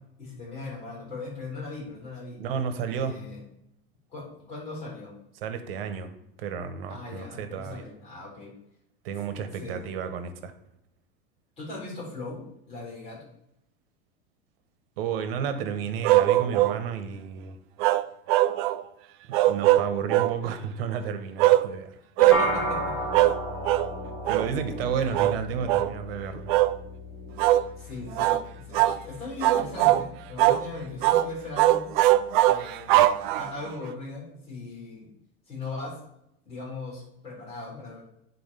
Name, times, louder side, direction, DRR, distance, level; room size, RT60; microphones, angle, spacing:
voice 1, 0.2-2.4 2.9-3.4 4.1-5.1 6.9-8.5 9.5-9.8 11.6-13.2 22.2-22.9 25.0-25.2 27.8-31.9 32.4-35.1 35.5-35.9 36.5-38.0, left 3 dB, 20° left, -4 dB, 3.5 m, -39 dB
voice 2, 2.4-3.2 5.4-6.1 6.4-7.8 9.0-10.5 15.0-17.6 19.3-22.0 24.2-26.5, right 7 dB, 80° right, 9 dB, 1.2 m, -32 dB
sound 1, 16.0-16.8 17.8-18.8 19.3-20.4 21.4-21.7 22.2-22.4 23.1-23.4 23.6-23.9 24.2-24.5 25.1-25.4 25.7-25.9 26.5-26.7 27.4-27.6 28.2-28.4 28.7-29.0 29.4-30.0 30.4-30.6 31.0-31.3 31.6-33.7, right 15 dB, 60° right, 0.4 m, -21 dB
sound 2, 22.3-31.8, equal, 5° left, 1.2 m, -35 dB
8.7 x 4.2 x 5.5 m, 0.80 s
supercardioid pair, 180°, 29 cm